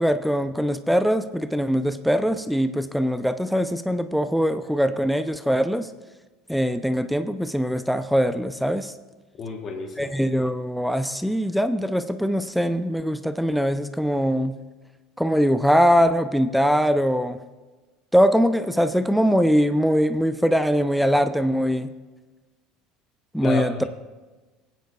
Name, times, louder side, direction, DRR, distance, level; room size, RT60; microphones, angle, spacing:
voice 1, 0.0-5.9 6.5-8.9 10.0-14.6 15.2-17.4 18.1-21.9 23.3-23.7, equal, ahead, 9 dB, 0.4 m, -22 dB
voice 2, 9.4-10.2 23.4-23.9, left 4 dB, 40° left, 2 dB, 1.1 m, -30 dB
20.0 x 9.1 x 2.3 m, 1.2 s
supercardioid pair, 110°, 0 cm